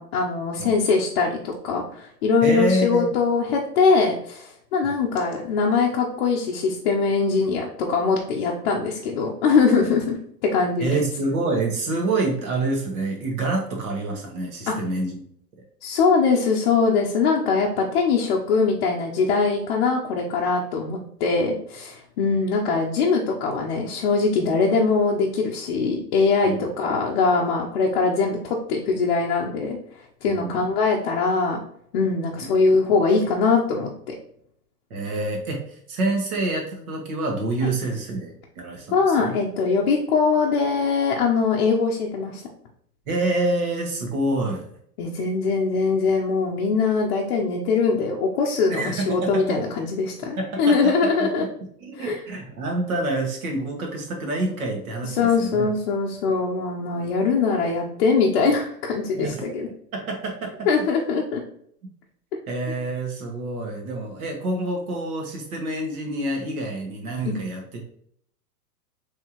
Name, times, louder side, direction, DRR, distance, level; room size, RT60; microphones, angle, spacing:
voice 1, 0.0-10.2 10.4-11.0 14.7-14.8 15.8-29.8 30.2-31.6 31.9-34.1 37.6-37.7 38.9-42.4 45.0-51.5 52.0-52.2 55.1-59.7 60.7-61.4 67.2-67.4, left 4 dB, 40° left, -2 dB, 0.6 m, -22 dB
voice 2, 2.4-3.1 4.8-5.0 9.8-9.9 10.8-15.2 26.4-26.6 30.2-30.5 34.9-39.3 43.1-44.7 48.7-49.3 50.4-51.5 51.8-55.7 59.2-59.4 59.9-60.9 62.5-67.8, right 2 dB, 60° right, 1 dB, 1.6 m, -27 dB
4.5 x 3.5 x 2.9 m, 0.66 s
supercardioid pair, 155°, 48 cm